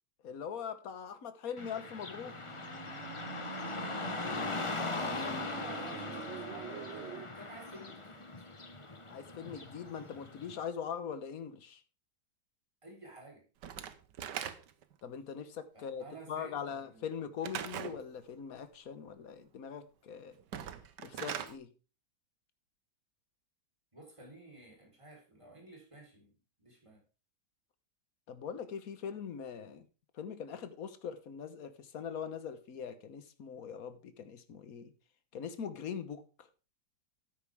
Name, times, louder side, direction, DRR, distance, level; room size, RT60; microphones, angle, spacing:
voice 1, 0.2-2.4 9.1-11.8 15.0-20.4 21.0-21.7 28.3-29.8 30.1-34.9 35.3-36.5, left 7 dB, 55° left, 1.6 m, -42 dB
Car passing by / Traffic noise roadway noise, 1.6-10.6, left 3 dB, 25° left, 0.9 m, -40 dB
sound 1, 1.7-7.3, right 9 dB, 60° right, 0.7 m, -46 dB
voice 2, 4.8-8.2 12.8-13.4 15.7-17.1 23.9-26.3 26.6-27.0, right 2 dB, 15° right, 4.3 m, -52 dB
Slam / Wood, 13.6-14.9 17.4-18.0 20.4-21.6, right 9 dB, 85° right, 1.6 m, -40 dB
13.0 x 9.5 x 3.6 m
omnidirectional pair, 1.8 m